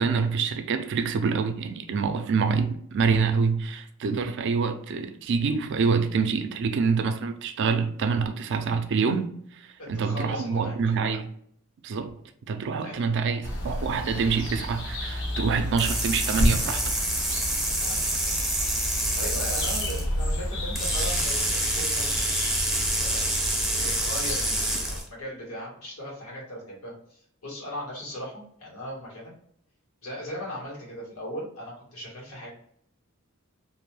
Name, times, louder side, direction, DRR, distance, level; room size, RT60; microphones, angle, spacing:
voice 1, 0.0-11.3 11.8-12.1 12.5-16.9, right 5 dB, 55° right, 0.4 m, -26 dB
voice 2, 9.8-10.8 12.8-13.1 17.8-18.6 19.1-22.6 23.0-23.3 23.8-29.3 30.0-32.5, equal, 85° left, 1.4 m, -38 dB
sound 1, 13.4-25.0, equal, 55° left, 0.6 m, -31 dB
sound 2, 15.8-20.0 20.8-25.1, right 1 dB, ahead, 0.5 m, -27 dB
2.5 x 2.2 x 3.1 m
head